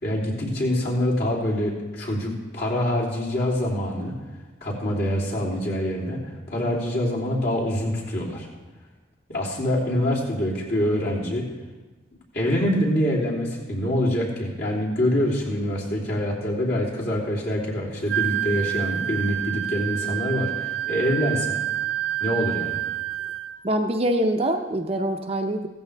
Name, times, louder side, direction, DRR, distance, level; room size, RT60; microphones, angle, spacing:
voice 1, 0.0-4.1 4.6-6.2 6.5-8.5 9.3-11.4 12.3-21.6 22.2-22.8, equal, 55° left, -5 dB, 3.2 m, -25 dB
Wind instrument woodwind instrument, 18.1-23.6, right 13 dB, 65° right, 0.4 m, -28 dB
voice 2, 23.6-25.7, right 1 dB, 30° right, 4 dB, 0.7 m, -24 dB
16.5 x 14.0 x 3.4 m, 1.2 s
head